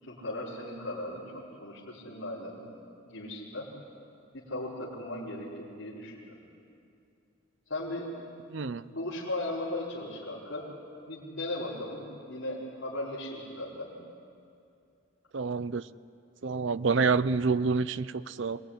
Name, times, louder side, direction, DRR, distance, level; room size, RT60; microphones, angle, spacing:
voice 1, 0.0-1.2 1.6-2.6 3.0-3.7 4.3-6.4 7.7-8.1 8.9-10.6 11.0-12.0 12.3-13.9, left 1 dB, 65° left, -9 dB, 4.7 m, -37 dB
voice 2, 8.5-8.9 15.3-15.8 16.4-18.6, right 4 dB, 60° right, 16 dB, 0.6 m, -28 dB
26.5 x 20.0 x 10.0 m, 2.5 s
head